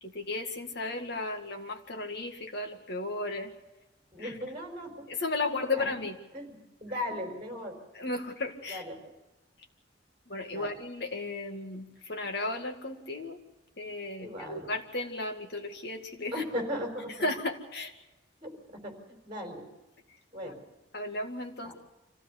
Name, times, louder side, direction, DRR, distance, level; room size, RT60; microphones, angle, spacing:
voice 1, 0.0-3.5 4.2-4.4 5.1-6.2 7.9-8.8 10.3-13.4 13.8-16.4 17.2-17.9 20.4-20.5 20.9-21.7, left 2 dB, 60° left, 4 dB, 2.1 m, -34 dB
voice 2, 4.1-5.1 5.4-5.9 6.3-7.8 8.7-9.1 10.5-10.7 14.2-14.7 16.3-17.3 18.4-19.6 20.3-20.6 21.6-21.7, left 1 dB, 30° right, 3 dB, 4.6 m, -38 dB
25.5 x 16.0 x 8.1 m, 1.0 s
head